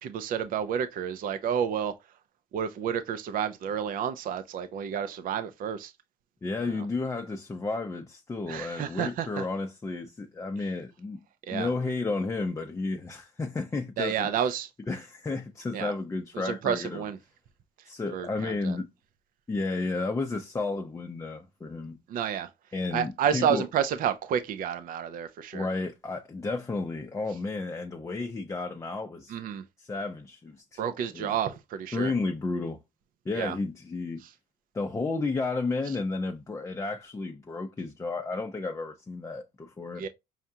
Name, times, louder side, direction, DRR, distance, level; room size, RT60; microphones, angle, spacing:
voice 1, 0.0-1.9 2.5-5.9 6.7-6.9 8.5-9.5 11.5-11.7 14.0-14.7 15.7-15.9 16.4-17.2 18.1-18.8 22.1-22.5 22.9-25.7 29.3-29.6 30.8-32.1 33.3-33.6 34.2-34.3 40.0-40.1, right 8 dB, 55° right, 0.5 m, -30 dB
voice 2, 6.4-11.2 11.5-14.3 14.9-17.0 17.9-18.9 19.5-22.0 22.7-23.7 25.5-29.4 29.8-30.8 31.1-31.3 31.9-32.8 33.3-34.2 34.7-40.0, left 3 dB, 15° left, 0.5 m, -32 dB
5.6 x 2.3 x 2.6 m
cardioid pair, 110°, 17 cm